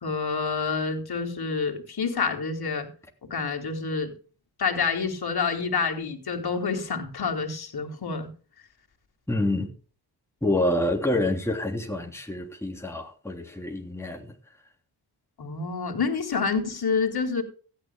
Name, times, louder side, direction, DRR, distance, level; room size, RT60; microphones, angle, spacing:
voice 1, 0.0-2.9 3.3-4.1 4.6-8.3 15.4-17.4, left 5 dB, 50° left, 3.5 m, -28 dB
voice 2, 9.3-9.7 10.4-14.3, left 1 dB, 5° left, 3.2 m, -27 dB
16.5 x 11.5 x 2.3 m
supercardioid pair, 45°, 47 cm